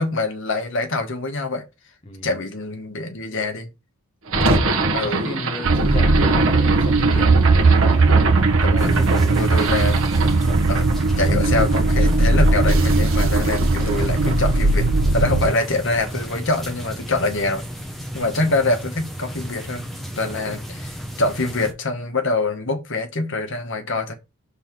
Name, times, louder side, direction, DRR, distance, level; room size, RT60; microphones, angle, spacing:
voice 1, 0.0-1.6 2.2-3.7 4.9-5.6 8.6-8.9 9.3-10.0 10.7-17.6 18.1-19.9 20.2-24.1, left 2 dB, 55° left, 1.4 m, -25 dB
voice 2, 2.1-2.4 4.4-7.4 7.8-8.1 8.7-9.4 18.4-18.6 20.3-20.6, left 1 dB, 25° left, 0.7 m, -33 dB
sound 1, 4.3-16.5, right 2 dB, 60° right, 1.5 m, -25 dB
sound 2, 5.6-15.5, right 3 dB, 85° right, 0.7 m, -18 dB
sound 3, 8.8-21.7, equal, ahead, 1.1 m, -34 dB
5.7 x 4.0 x 5.9 m
head